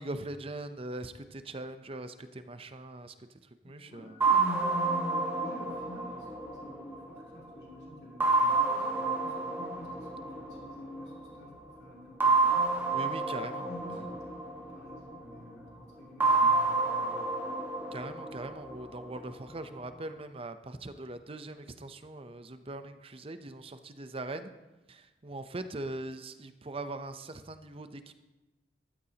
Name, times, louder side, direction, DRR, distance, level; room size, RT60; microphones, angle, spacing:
voice 1, 0.0-3.1 3.6-4.2 12.9-14.0 17.9-24.5 24.9-28.1, right 2 dB, 35° right, 10 dB, 0.6 m, -41 dB
voice 2, 3.6-11.5 11.8-12.9 13.6-17.4, left 1 dB, 70° left, -4 dB, 2.8 m, -46 dB
sound 1, 4.2-7.5 8.2-11.1 12.2-15.3 16.2-19.3, right 3 dB, 10° right, 1.5 m, -29 dB
13.5 x 13.0 x 2.9 m, 1.1 s
head